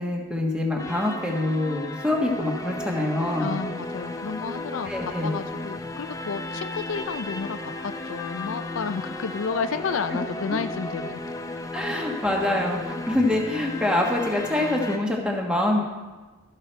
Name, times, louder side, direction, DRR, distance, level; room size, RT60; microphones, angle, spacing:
voice 1, 0.0-3.5 4.9-5.3 10.5-10.6 11.7-15.8, left 1 dB, 5° right, -1 dB, 1.4 m, -25 dB
sound 1, 0.8-15.0, left 1 dB, 15° left, 0.5 m, -34 dB
voice 2, 3.4-11.2, left 5 dB, 80° left, 11 dB, 0.4 m, -31 dB
13.0 x 6.7 x 4.5 m, 1.3 s
head